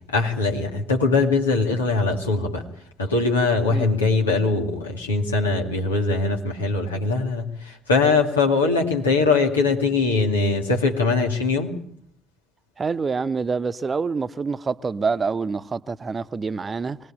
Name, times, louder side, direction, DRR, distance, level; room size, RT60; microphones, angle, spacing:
voice 1, 0.1-2.6 3.0-11.8, left 3 dB, 85° left, 2.4 m, -21 dB
voice 2, 12.8-17.0, right 4 dB, 35° right, 1.0 m, -26 dB
24.0 x 19.0 x 8.9 m
figure-of-eight pair, 45°, 0 cm